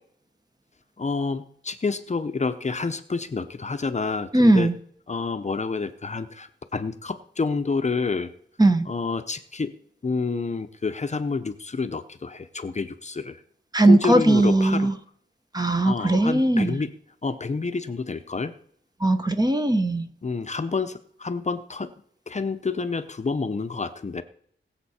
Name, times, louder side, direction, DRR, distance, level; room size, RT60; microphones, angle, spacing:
voice 1, 1.0-4.7 5.1-8.3 8.9-9.7 10.0-13.4 13.9-14.9 15.8-16.9 17.2-18.5 20.2-21.9 22.3-24.2, left 4 dB, 35° left, 9 dB, 0.7 m, -28 dB
voice 2, 4.3-4.8 8.6-8.9 13.7-14.9 15.5-16.8 19.0-20.1, right 2 dB, 20° right, 8 dB, 0.9 m, -19 dB
21.5 x 7.4 x 4.3 m, 0.64 s
wide cardioid pair, 140°, 20 cm